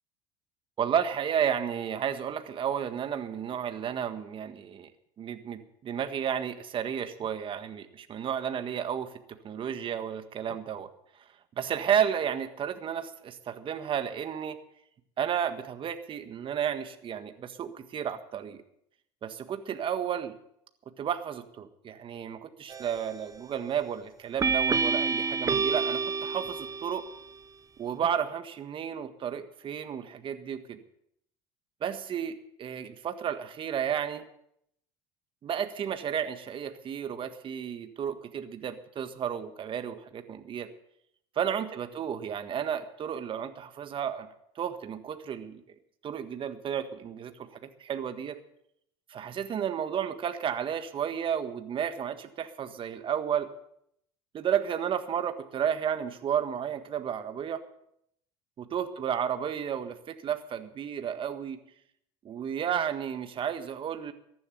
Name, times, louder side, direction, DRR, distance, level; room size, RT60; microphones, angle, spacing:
voice 1, 0.8-4.9 5.2-10.9 11.6-14.6 15.2-18.6 19.2-20.3 21.0-27.0 27.8-30.8 31.8-34.2 35.4-40.7 41.3-44.3 44.6-45.6 46.0-47.5 47.8-48.4 49.1-53.5 54.3-57.6 58.6-61.6 62.2-64.1, right 8 dB, 40° right, 9 dB, 1.6 m, -32 dB
sound 1, 22.7-23.2 24.4-27.2, right 5 dB, 25° right, 1.0 m, -28 dB
14.5 x 11.0 x 6.9 m, 0.73 s
supercardioid pair, 85°, 13 cm